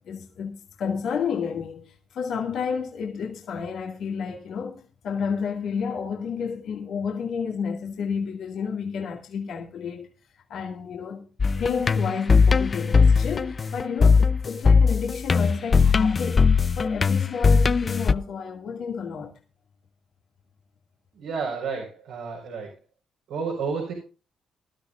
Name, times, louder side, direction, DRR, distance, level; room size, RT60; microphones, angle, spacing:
voice 1, 0.1-10.1 10.5-11.2 11.6-16.5 16.8-19.3, left 6 dB, 70° left, 2.2 m, -31 dB
sound 1, 11.4-18.1, left 5 dB, 40° left, 0.6 m, -19 dB
voice 2, 21.1-22.7 23.3-23.9, right 5 dB, 80° right, 4.9 m, -31 dB
19.5 x 12.5 x 2.5 m
supercardioid pair, 55°, 0 cm